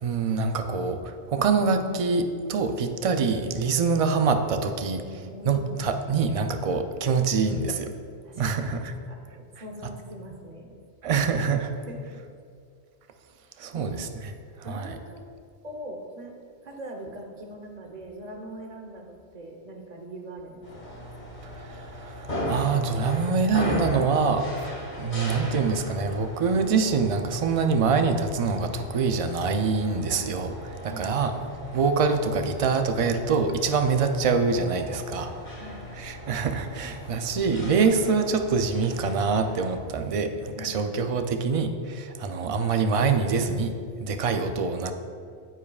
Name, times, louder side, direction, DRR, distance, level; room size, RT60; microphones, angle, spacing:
voice 1, 0.0-7.9 8.4-8.9 11.0-11.7 13.6-14.3 14.7-15.0 21.6-31.3 31.7-35.4 36.0-44.9, right 5 dB, 65° right, 7 dB, 0.3 m, -25 dB
voice 2, 5.2-5.9 8.2-10.7 11.9-12.0 13.7-14.1 14.6-15.2 15.6-16.3 16.6-21.0 30.8-31.1 35.6-35.8 40.6-41.0, right 1 dB, 40° right, 2 dB, 0.9 m, -42 dB
sound 1, 20.6-39.8, equal, 40° left, 1.7 m, -37 dB
9.7 x 7.2 x 2.3 m, 2.3 s
omnidirectional pair, 1.1 m